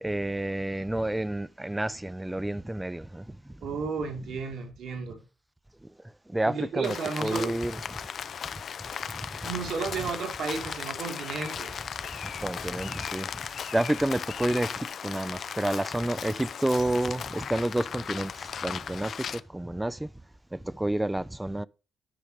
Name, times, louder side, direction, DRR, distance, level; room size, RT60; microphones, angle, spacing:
voice 1, 0.0-3.2 6.3-7.8 9.1-9.2 12.4-13.3 13.7-20.1 20.5-21.7, right 1 dB, 10° right, 0.4 m, -29 dB
voice 2, 3.6-5.2 6.5-7.6 9.4-11.7, right 5 dB, 75° right, 2.3 m, -33 dB
Rain, 6.8-19.4, left 7 dB, 60° left, 0.4 m, -37 dB
10.0 x 5.1 x 4.8 m
cardioid pair, 110°, 0 cm